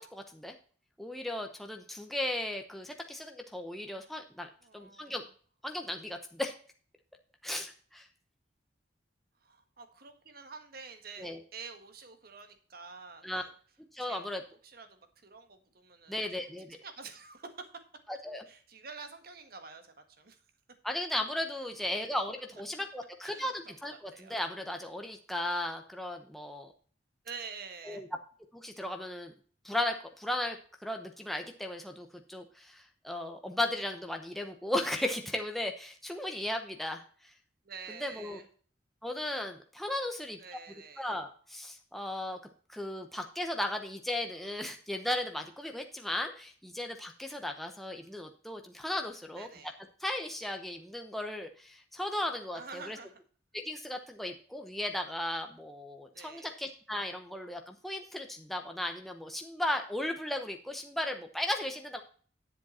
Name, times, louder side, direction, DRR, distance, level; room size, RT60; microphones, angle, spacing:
voice 1, 0.1-0.5 1.0-5.2 5.6-6.5 7.4-8.1 11.2-11.4 13.2-13.4 13.9-14.4 16.1-16.8 18.2-18.4 20.8-26.7 27.8-28.1 28.5-29.3 29.6-30.6 30.8-37.0 37.9-38.4 39.0-40.4 41.0-42.4 42.7-49.5 50.0-53.0 53.5-62.0, left 1 dB, ahead, 3 dB, 0.9 m, -36 dB
voice 2, 4.6-5.3 9.4-13.5 14.0-14.4 14.6-16.2 16.8-17.7 18.5-20.4 23.2-24.4 27.2-28.0 37.6-38.5 40.4-41.2 49.4-49.7 52.5-53.2 56.1-56.5, right 5 dB, 55° right, 8 dB, 1.5 m, -48 dB
10.5 x 7.6 x 4.2 m, 0.43 s
head